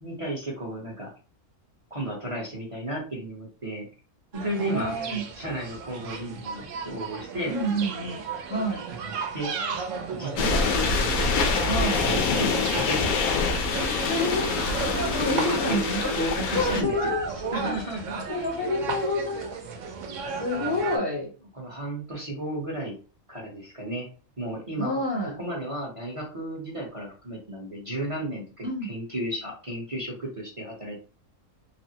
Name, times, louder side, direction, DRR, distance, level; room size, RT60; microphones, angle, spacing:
voice 1, 0.0-1.1 1.9-3.9 4.3-4.9 5.3-7.5 9.3-9.5 10.1-10.7 11.3-11.7 12.0-13.3 15.3-17.1 17.5-18.4 20.2-21.0 21.5-22.9 23.3-24.1 24.4-25.0 25.4-31.0, right 1 dB, 30° right, -3 dB, 0.7 m, -33 dB
sound 1, 4.3-21.0, right 5 dB, 65° right, 0.9 m, -35 dB
voice 2, 4.6-5.2 7.5-8.2 8.5-8.8 11.6-12.1 14.1-14.5 15.1-16.1 16.5-17.7 18.3-19.6 19.9-20.0 20.4-21.3 24.8-25.4 28.6-28.9, left 1 dB, 55° left, -1 dB, 0.8 m, -28 dB
sound 2, 10.4-16.8, left 4 dB, 80° left, 1.0 m, -25 dB
3.3 x 2.0 x 2.7 m, 0.35 s
omnidirectional pair, 1.5 m